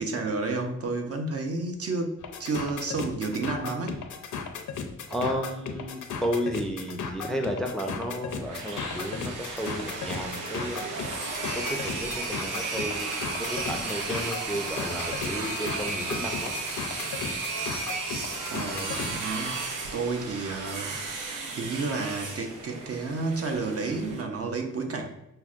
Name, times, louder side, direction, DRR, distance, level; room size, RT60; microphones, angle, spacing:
voice 1, 0.0-4.0 18.5-19.6 19.9-21.0 21.5-25.1, right 3 dB, 50° right, 3 dB, 0.6 m, -31 dB
sound 1, 2.2-19.1, left 6 dB, 75° left, 0.5 m, -36 dB
voice 2, 5.1-10.8 11.5-13.1 13.4-16.5, equal, ahead, 3 dB, 0.4 m, -33 dB
sound 2, 8.3-24.2, right 3 dB, 90° right, 0.6 m, -34 dB
5.7 x 2.1 x 2.4 m, 0.89 s
cardioid pair, 65°, 31 cm